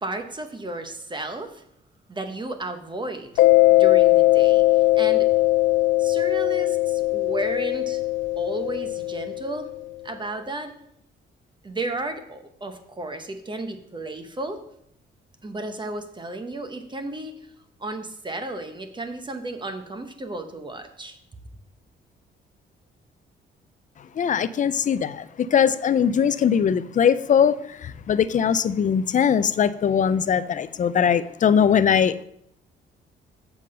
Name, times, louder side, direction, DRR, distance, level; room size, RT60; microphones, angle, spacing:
voice 1, 0.0-1.6 2.1-3.3 3.7-5.3 6.0-8.0 8.4-9.7 10.0-10.7 11.6-14.6 15.4-17.5 17.8-21.2, right 2 dB, 25° right, 7 dB, 0.9 m, -33 dB
Mallet percussion, 3.4-9.8, left 18 dB, 85° left, 0.6 m, -20 dB
voice 2, 24.2-32.2, left 7 dB, 40° left, 15 dB, 0.5 m, -21 dB
7.3 x 5.8 x 5.4 m, 0.73 s
cardioid pair, 90°, 20 cm